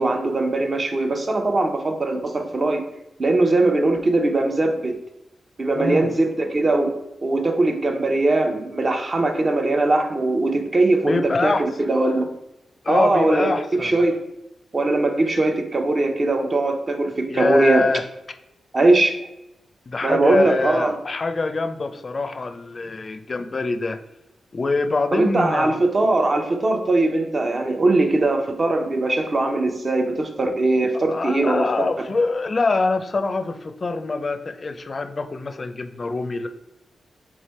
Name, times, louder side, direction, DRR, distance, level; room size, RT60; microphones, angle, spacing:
voice 1, 0.0-2.8 3.2-5.0 5.6-11.2 11.4-12.3 12.9-14.2 14.7-17.9 18.7-19.1 20.0-21.0 25.1-31.7, right 2 dB, 45° right, 5 dB, 0.7 m, -20 dB
voice 2, 5.7-6.2 11.0-11.7 12.8-13.9 17.3-18.0 19.9-24.0 24.5-25.8 31.1-36.5, left 3 dB, 45° left, 8 dB, 0.4 m, -24 dB
3.5 x 3.3 x 4.2 m, 0.89 s
cardioid pair, 55°, 0 cm